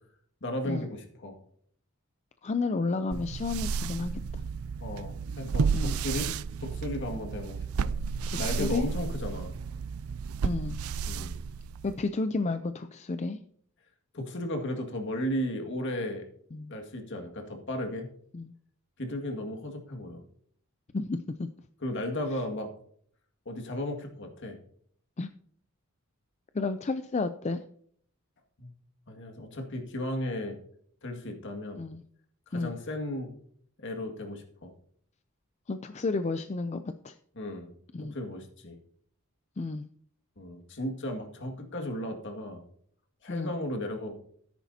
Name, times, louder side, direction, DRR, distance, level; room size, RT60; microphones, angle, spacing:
voice 1, 0.4-1.4 4.8-6.3 6.6-7.9 8.4-9.5 11.1-11.4 14.1-16.2 16.7-18.1 19.0-20.2 21.8-22.7 23.5-24.6 28.6-28.7 29.1-30.6 31.0-31.8 32.5-33.3 33.8-34.7 37.3-37.7 38.0-38.8 40.4-42.6 43.2-44.1, left 1 dB, 55° left, 3 dB, 2.0 m, -35 dB
voice 2, 2.4-4.2 5.7-6.0 8.3-8.9 10.4-10.8 11.8-13.4 16.5-16.7 18.3-18.5 20.9-21.5 25.2-25.3 26.5-27.6 31.7-32.0 32.5-32.8 35.7-37.1 37.9-38.1 39.6-39.9 43.3-43.5, left 3 dB, 30° left, 10 dB, 0.4 m, -31 dB
sound 1, 3.1-12.0, right 5 dB, 75° right, 0.4 m, -32 dB
13.5 x 10.5 x 2.8 m, 0.62 s
head